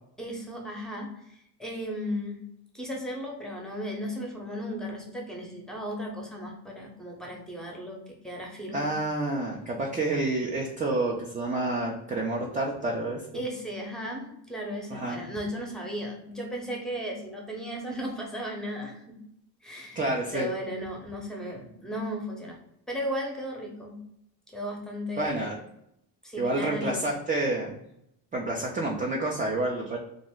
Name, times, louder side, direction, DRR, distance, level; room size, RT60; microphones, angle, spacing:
voice 1, 0.2-2.4 2.7-8.9 13.3-19.0 19.6-22.6 22.9-24.0 24.5-25.5 26.2-27.1, equal, ahead, -1 dB, 0.7 m, -35 dB
voice 2, 8.7-13.4 14.9-15.2 20.0-20.5 25.2-25.6 26.4-27.8 28.3-30.0, right 2 dB, 20° right, -1 dB, 0.4 m, -29 dB
2.5 x 2.0 x 3.5 m, 0.77 s
cardioid pair, 90°, 42 cm